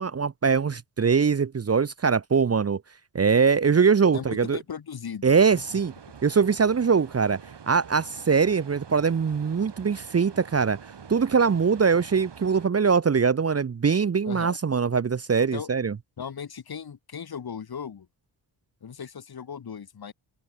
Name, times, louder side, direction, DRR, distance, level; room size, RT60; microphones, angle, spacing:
voice 1, 0.0-2.8 3.1-4.6 5.2-5.9 6.2-7.4 7.7-10.8 11.1-15.9, right 5 dB, 30° right, 0.8 m, -22 dB
voice 2, 4.1-5.8 14.3-14.6 15.5-15.7 16.2-18.1 18.8-20.1, left 7 dB, 50° left, 2.1 m, -37 dB
sound 1, 5.5-12.7, right 7 dB, 60° right, 7.6 m, -46 dB
open air
cardioid pair, 80°, 46 cm